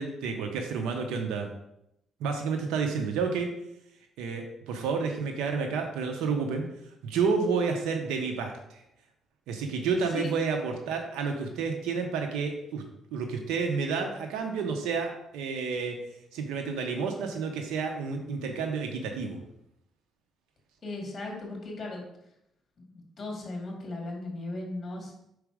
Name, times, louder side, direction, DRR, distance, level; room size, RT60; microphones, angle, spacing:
voice 1, 0.0-1.5 2.2-3.5 4.2-6.6 7.0-8.8 9.5-12.8 13.1-16.0 16.3-19.4, right 5 dB, 90° right, 3 dB, 0.7 m, -30 dB
voice 2, 20.8-22.0 22.8-22.9 23.2-25.1, left 2 dB, 40° left, 0 dB, 2.1 m, -36 dB
4.8 x 4.0 x 4.8 m, 0.80 s
cardioid pair, 90°, 0 cm